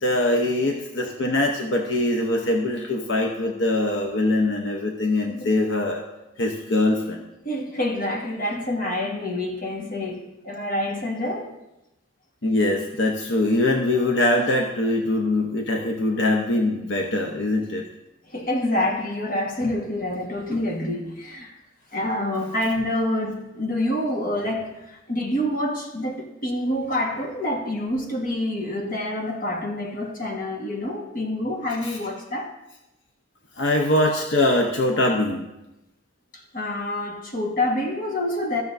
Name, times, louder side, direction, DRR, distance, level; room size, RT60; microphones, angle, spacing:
voice 1, 0.0-6.0 6.4-7.3 12.4-17.8 31.8-32.0 33.6-35.5, left 1 dB, 65° left, 0.8 m, -22 dB
voice 2, 7.4-11.5 18.3-21.5 21.9-32.5 36.3-38.6, left 1 dB, 45° left, 1.5 m, -27 dB
15.0 x 6.7 x 2.6 m
head